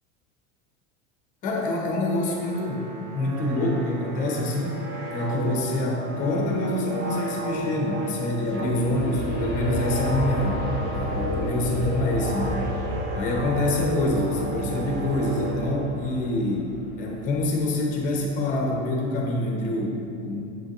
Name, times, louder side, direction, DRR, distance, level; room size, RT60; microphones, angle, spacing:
voice 1, 1.4-4.8 5.1-10.7 10.9-12.7 13.1-20.4, left 1 dB, 25° left, 0 dB, 0.6 m, -26 dB
sound 1, 2.1-16.2, right 1 dB, 40° right, 0.5 m, -32 dB
Aircraft, 8.2-18.7 19.2-19.3, left 1 dB, 5° right, 1.1 m, -34 dB
7.6 x 5.4 x 2.8 m, 2.6 s
supercardioid pair, 180°, 34 cm